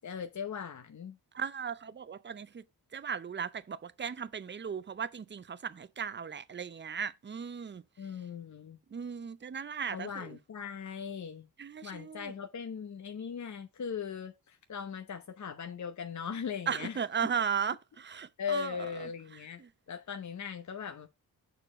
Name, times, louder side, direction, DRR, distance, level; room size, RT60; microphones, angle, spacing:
voice 1, 0.0-1.2 8.0-8.8 9.9-11.5 11.8-17.0 18.4-19.6 19.9-21.1, left 7 dB, 45° left, 0.8 m, -39 dB
voice 2, 1.3-2.6 2.9-7.8 8.9-10.3 11.6-12.3 16.7-19.1 19.6-19.7, right 7 dB, 30° right, 0.6 m, -36 dB
6.8 x 4.4 x 4.9 m
cardioid pair, 70°, 40 cm